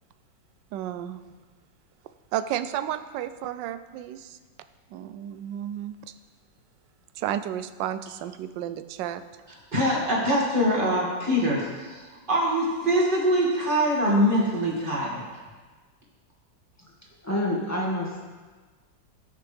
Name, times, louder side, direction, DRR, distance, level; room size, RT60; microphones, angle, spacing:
voice 1, 0.7-1.2 2.3-4.4 4.9-5.9 7.1-9.2, right 11 dB, 75° right, 11 dB, 1.2 m, -32 dB
voice 2, 9.7-12.0 12.3-15.2, equal, 25° right, -4 dB, 2.4 m, -23 dB
voice 3, 17.2-18.2, left 1 dB, 10° left, -4 dB, 1.8 m, -27 dB
18.5 x 6.6 x 3.5 m, 1.4 s
omnidirectional pair, 2.1 m